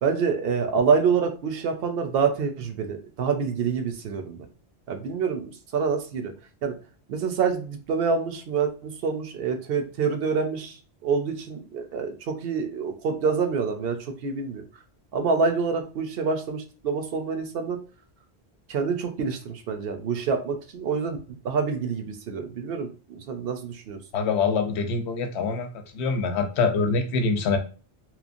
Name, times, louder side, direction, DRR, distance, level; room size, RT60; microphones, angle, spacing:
voice 1, 0.0-4.5 4.9-6.3 6.6-6.8 7.1-14.6 15.1-17.8 18.7-21.2 21.4-24.0, right 5 dB, 70° right, 6 dB, 0.7 m, -27 dB
voice 2, 24.1-25.7 25.9-27.6, left 4 dB, 85° left, 6 dB, 0.8 m, -24 dB
2.9 x 2.1 x 2.5 m, 0.37 s
omnidirectional pair, 1.1 m